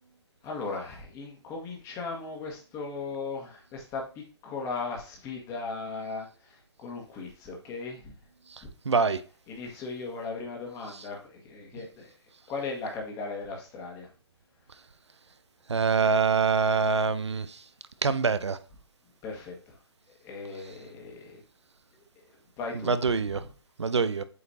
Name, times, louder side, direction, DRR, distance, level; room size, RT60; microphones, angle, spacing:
voice 1, 0.4-8.1 8.6-8.7 9.5-12.1 12.5-14.1 19.2-19.8 20.2-21.4 22.6-23.0 23.3-23.5, left 4 dB, 20° left, 1.7 m, -37 dB
voice 2, 8.9-9.2 15.7-17.5 18.0-18.6 22.9-23.4 23.8-24.2, right 5 dB, 75° right, 0.7 m, -24 dB
8.1 x 4.9 x 2.8 m
figure-of-eight pair, 130°, 15 cm